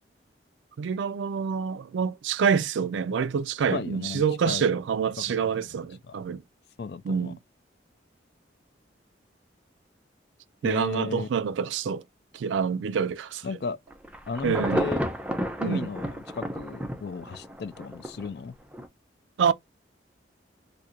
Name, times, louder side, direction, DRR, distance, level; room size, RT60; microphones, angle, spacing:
voice 1, 0.8-6.4 7.0-7.4 10.6-12.0 12.3-13.4 14.4-14.9 15.6-15.9 19.4-19.5, right 6 dB, 85° right, 0.3 m, -27 dB
voice 2, 3.7-4.7 5.2-5.4 6.1-6.2 6.8-7.3 10.6-11.3 13.4-13.8 14.3-15.0 15.6-18.5, left 4 dB, 60° left, 0.4 m, -35 dB
Insect / Thunder / Rain, 13.9-18.3 18.7-18.8, equal, 5° right, 0.5 m, -31 dB
2.6 x 2.5 x 4.2 m
head